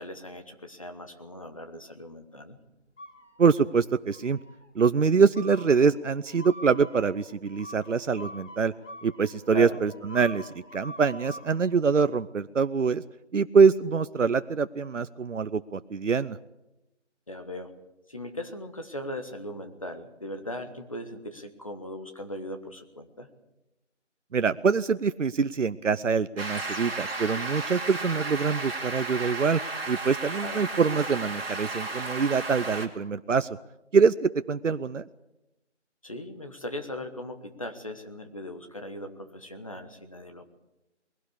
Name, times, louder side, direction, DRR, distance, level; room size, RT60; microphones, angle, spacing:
voice 1, 0.0-2.6 9.5-9.8 17.3-17.7 18.1-23.3 30.4-30.6 36.0-40.5, left 1 dB, 30° left, 6 dB, 1.2 m, -39 dB
sound 1, 3.0-3.7 4.1-4.7 5.3-11.7, left 1 dB, 80° left, 4.4 m, -46 dB
voice 2, 3.4-4.4 4.7-8.7 9.0-13.0 13.3-16.4 24.3-29.6 29.9-33.6 33.9-35.1, right 5 dB, 80° right, 12 dB, 0.8 m, -24 dB
sound 2, 26.4-32.9, right 3 dB, 50° right, 3.1 m, -34 dB
21.0 x 17.0 x 8.4 m, 0.94 s
figure-of-eight pair, 170°, 36 cm